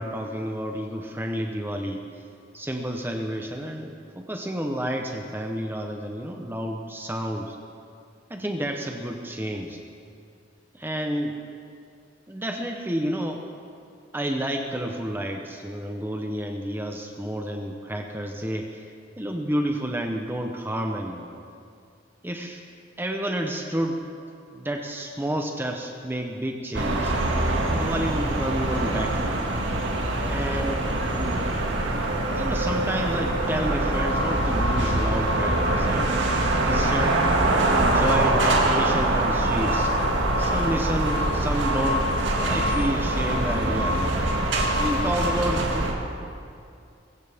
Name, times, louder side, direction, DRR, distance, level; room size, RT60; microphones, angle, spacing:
voice 1, 0.0-2.0 2.5-7.6 8.3-9.8 10.7-11.4 12.3-13.5 14.1-18.8 19.2-21.3 22.2-22.6 23.0-24.1 24.5-27.1 27.7-29.6 30.3-30.8 32.3-36.1 36.6-37.3 37.7-39.9 40.4-42.2 42.4-44.1 44.8-45.9, right 1 dB, 10° right, 3 dB, 0.8 m, -30 dB
sound 1, 26.7-45.9, right 1 dB, 85° right, 2.1 m, -24 dB
23.0 x 15.5 x 3.5 m, 2.4 s
head